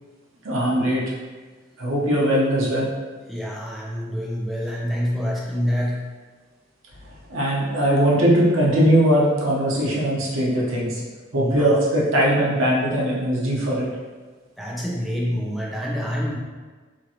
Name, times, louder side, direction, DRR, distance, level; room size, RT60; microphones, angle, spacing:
voice 1, 0.4-1.0 1.8-2.9 7.3-11.0 11.3-13.9, right 1 dB, 80° right, -5 dB, 0.8 m, -20 dB
voice 2, 3.3-6.0 11.3-11.8 14.6-16.4, equal, ahead, -5 dB, 0.5 m, -27 dB
3.0 x 2.5 x 2.7 m, 1.4 s
head